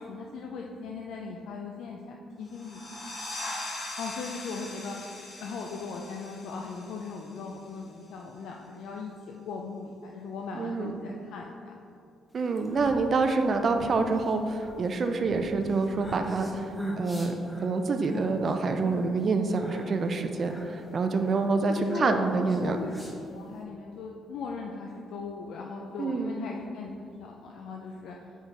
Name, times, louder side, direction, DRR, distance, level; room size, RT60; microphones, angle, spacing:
voice 1, 0.0-3.1 4.0-5.0 5.4-11.7 21.7-22.2 22.6-22.9 23.3-26.9 27.2-28.2, left 4 dB, 80° left, 0 dB, 0.4 m, -38 dB
sound 1, 2.5-7.8, left 2 dB, 50° left, 1.4 m, -41 dB
voice 2, 10.5-10.9 12.3-17.3 17.6-22.8 26.0-26.4, right 3 dB, 50° right, 6 dB, 0.4 m, -27 dB
sound 2, 12.4-23.6, equal, 5° left, 0.9 m, -42 dB
4.6 x 4.4 x 5.0 m, 2.5 s
cardioid pair, 90°, 0 cm